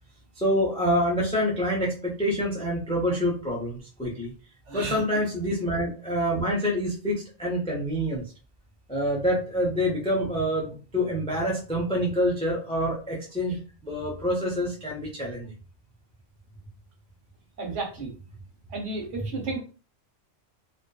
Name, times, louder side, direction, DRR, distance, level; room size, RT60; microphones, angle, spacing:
voice 1, 0.4-4.3 4.7-8.2 8.9-15.5 19.2-19.3, equal, 10° left, -2 dB, 0.3 m, -27 dB
voice 2, 4.7-5.0 17.6-18.1 18.7-19.6, right 3 dB, 75° right, 1 dB, 1.2 m, -32 dB
2.5 x 2.4 x 2.2 m, 0.35 s
omnidirectional pair, 1.2 m